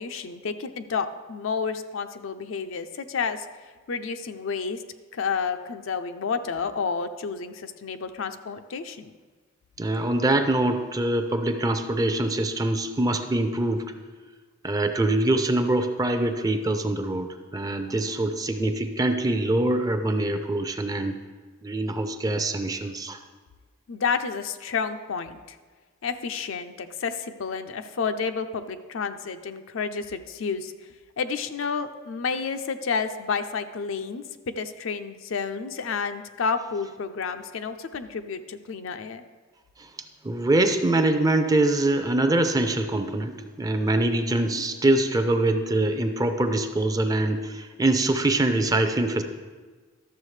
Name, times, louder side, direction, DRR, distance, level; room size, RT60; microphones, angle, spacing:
voice 1, 0.0-3.5 3.9-4.8 5.1-9.1 23.9-25.6 26.0-30.7 31.2-39.2, left 5 dB, 65° left, 9 dB, 0.5 m, -30 dB
voice 2, 9.8-13.8 14.6-21.2 21.6-23.2 40.2-49.2, right 2 dB, 15° right, 7 dB, 0.5 m, -24 dB
12.5 x 7.0 x 3.2 m, 1.4 s
head